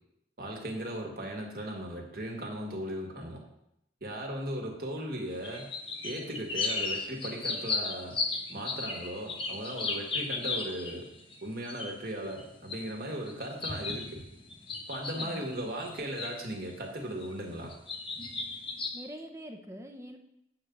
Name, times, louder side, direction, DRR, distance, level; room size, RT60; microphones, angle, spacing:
voice 1, 0.4-3.4 4.0-5.6 6.0-8.2 8.5-11.1 11.4-14.2 14.9-17.7, right 1 dB, 55° right, 0 dB, 1.7 m, -37 dB
sound 1, 5.4-11.4 11.6-16.8 17.1-18.9, left 3 dB, 30° left, 1.0 m, -36 dB
voice 2, 15.2-15.5 18.9-20.2, equal, 15° right, 5 dB, 0.6 m, -44 dB
8.4 x 3.9 x 7.0 m, 0.81 s
head